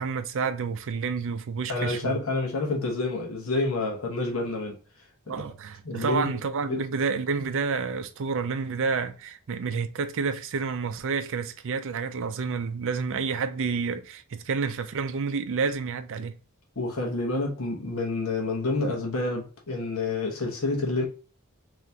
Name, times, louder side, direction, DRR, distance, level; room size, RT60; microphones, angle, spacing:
voice 1, 0.0-2.2 5.3-16.3, right 5 dB, 60° right, 0.5 m, -29 dB
voice 2, 1.7-4.8 5.3-5.4 5.8-6.3 6.7-6.9 16.8-21.0, left 2 dB, 65° left, 1.1 m, -28 dB
3.4 x 3.0 x 2.7 m
head